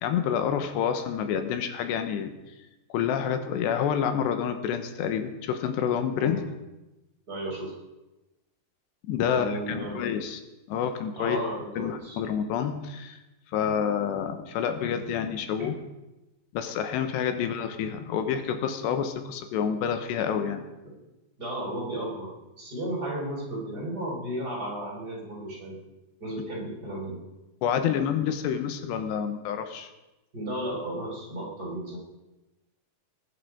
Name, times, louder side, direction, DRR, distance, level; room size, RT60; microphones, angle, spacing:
voice 1, 0.0-2.3 2.9-6.4 9.1-10.4 10.7-11.4 11.8-13.2 13.5-15.7 16.5-20.6 27.6-29.9, left 8 dB, 85° left, 8 dB, 3.3 m, -28 dB
voice 2, 7.3-7.7 9.2-10.0 11.1-12.2 15.6-15.7 21.4-25.8 26.2-27.2 30.3-32.0, right 1 dB, 25° right, -3 dB, 4.9 m, -34 dB
20.0 x 10.5 x 5.1 m, 1.0 s
omnidirectional pair, 4.8 m